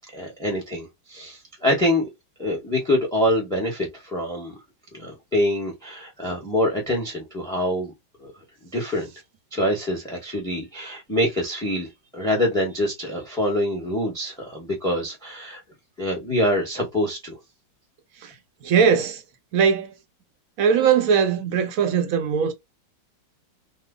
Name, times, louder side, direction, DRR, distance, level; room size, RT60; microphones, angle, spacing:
voice 1, 0.1-2.1 2.4-4.6 4.9-7.9 8.2-8.3 8.7-9.1 9.5-15.6 16.0-17.3, left 1 dB, 5° left, 0.7 m, -25 dB
voice 2, 18.6-19.2 19.5-19.9 20.6-22.5, right 7 dB, 65° right, 0.8 m, -20 dB
3.0 x 2.1 x 3.6 m
omnidirectional pair, 2.0 m